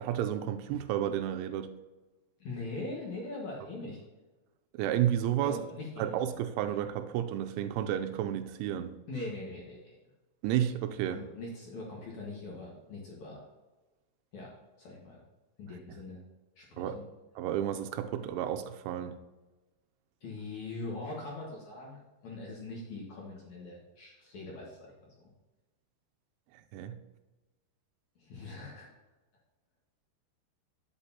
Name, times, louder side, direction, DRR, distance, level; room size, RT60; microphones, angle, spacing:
voice 1, 0.0-1.7 4.7-5.6 6.0-8.9 10.4-11.2 16.8-17.0 17.4-19.2 26.7-27.0, right 11 dB, 90° right, 7 dB, 3.1 m, -31 dB
voice 2, 2.4-4.0 5.4-6.2 9.1-9.9 11.0-13.4 14.3-14.5 14.8-15.2 15.6-16.2 16.6-17.0 20.2-25.1 28.2-28.9, left 2 dB, 60° left, -3 dB, 2.1 m, -42 dB
11.5 x 7.8 x 2.8 m, 1.1 s
omnidirectional pair, 5.4 m